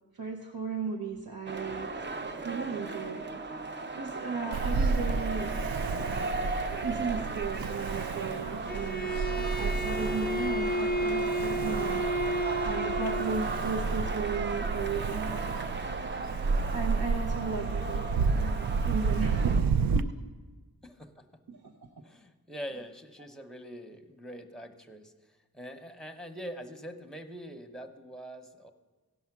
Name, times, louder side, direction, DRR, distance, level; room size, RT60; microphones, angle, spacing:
voice 1, 0.1-2.1 2.4-3.4 4.0-5.5 6.7-9.1 9.6-12.0 12.6-15.4 16.7-19.7 19.9-20.1 21.5-21.9, right 5 dB, 90° right, -1 dB, 0.9 m, -35 dB
sound 1, 1.5-19.6, right 3 dB, 30° right, 0.6 m, -36 dB
Ocean, 4.5-20.0, right 4 dB, 75° right, 0.5 m, -31 dB
Bowed string instrument, 8.7-13.5, right 1 dB, 25° left, 0.5 m, -32 dB
voice 2, 20.8-21.3 22.0-25.1 25.5-28.7, equal, ahead, 7 dB, 0.9 m, -43 dB
16.0 x 5.6 x 6.0 m, 1.3 s
wide cardioid pair, 65°, 36 cm